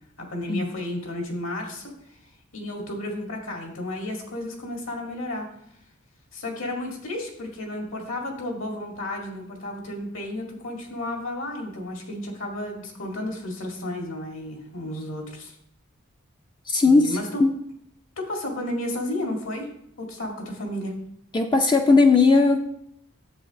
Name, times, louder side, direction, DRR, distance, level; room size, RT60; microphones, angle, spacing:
voice 1, 0.2-1.8 2.5-5.5 6.3-15.6 16.8-17.4 18.2-19.7 20.0-20.9, left 1 dB, 70° left, 1 dB, 2.0 m, -32 dB
voice 2, 16.7-17.1 17.4-17.5 21.3-22.6, left 3 dB, 20° left, 4 dB, 0.3 m, -17 dB
9.7 x 7.7 x 3.0 m, 0.74 s
head